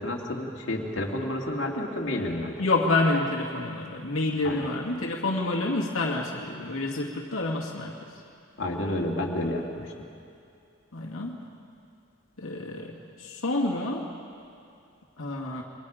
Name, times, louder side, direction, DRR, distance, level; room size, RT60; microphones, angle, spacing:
voice 1, 0.0-2.6 4.4-4.7 8.6-9.9, left 1 dB, 60° left, -2 dB, 2.5 m, -30 dB
voice 2, 2.6-8.0 10.9-11.4 12.4-14.1 15.2-15.6, left 2 dB, 85° left, -2 dB, 2.2 m, -28 dB
29.0 x 23.0 x 5.1 m, 2.5 s
head